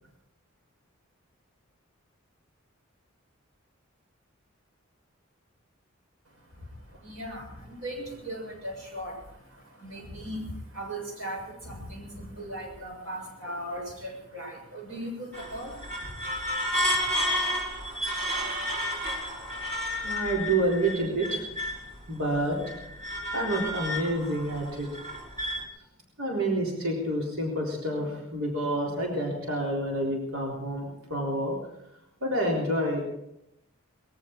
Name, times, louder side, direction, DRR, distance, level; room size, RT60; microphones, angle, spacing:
voice 1, 6.2-17.2, right 1 dB, 65° right, 1 dB, 6.8 m, -39 dB
sound 1, 15.3-21.9 22.3-25.6, left 1 dB, 35° right, 3.6 m, -31 dB
voice 2, 20.0-21.5 22.1-22.6 23.3-24.9 26.2-31.6 32.2-33.0, right 1 dB, 80° right, -2 dB, 3.8 m, -28 dB
21.0 x 15.0 x 4.5 m, 0.82 s
head